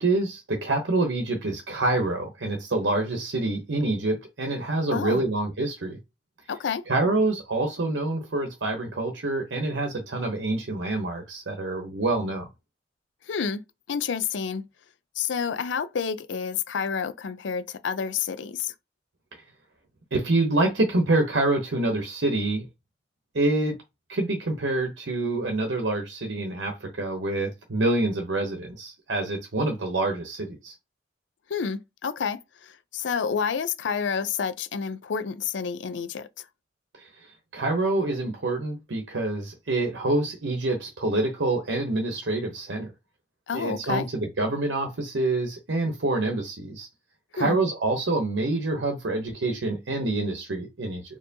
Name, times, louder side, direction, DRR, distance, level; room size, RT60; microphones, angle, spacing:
voice 1, 0.0-6.0 6.9-12.5 20.1-22.7 23.3-23.8 24.1-30.7 37.0-42.9 43.5-46.9 47.3-51.0, right 2 dB, 90° right, 0.8 m, -26 dB
voice 2, 4.9-5.2 6.5-6.8 13.3-13.6 13.9-14.6 15.2-18.7 31.5-36.4 43.5-44.1 47.4-47.6, left 6 dB, 90° left, 0.5 m, -29 dB
4.4 x 2.9 x 2.7 m
head